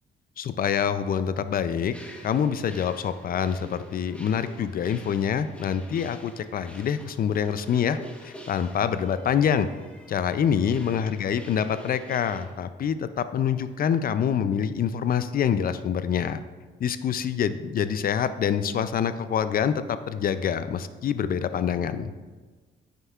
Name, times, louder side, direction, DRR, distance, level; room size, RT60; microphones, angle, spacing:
voice 1, 0.4-1.9 2.2-9.7 10.1-16.4 16.8-22.1, left 8 dB, 50° left, 12 dB, 0.4 m, -26 dB
sound 1, 1.9-12.5, equal, 5° left, 1.1 m, -47 dB
9.1 x 6.6 x 2.4 m, 1.4 s
cardioid pair, 90°, 20 cm